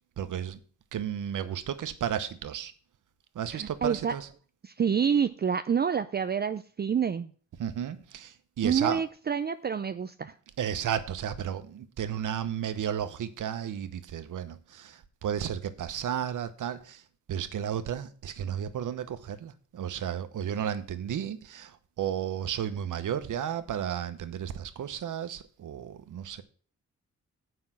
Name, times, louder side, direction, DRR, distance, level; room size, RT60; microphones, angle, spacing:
voice 1, 0.2-0.6 0.9-2.7 3.3-4.3 7.6-9.0 10.6-17.0 17.3-26.4, right 9 dB, 85° right, 1.0 m, -33 dB
voice 2, 3.5-4.1 4.6-7.3 8.6-10.3, right 7 dB, 35° right, 0.4 m, -28 dB
7.8 x 5.6 x 7.5 m
cardioid pair, 100°, 30 cm